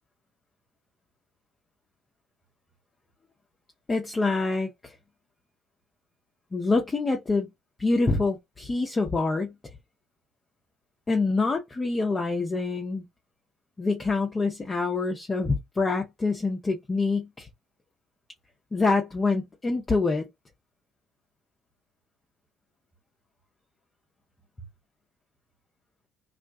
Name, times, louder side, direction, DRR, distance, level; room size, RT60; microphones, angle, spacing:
voice 1, 3.9-4.9 6.5-7.5 7.8-9.5 11.1-13.0 13.8-17.5 18.7-20.3, left 3 dB, 25° left, 0.6 m, -26 dB
2.4 x 2.2 x 2.5 m
figure-of-eight pair, 55°, 0 cm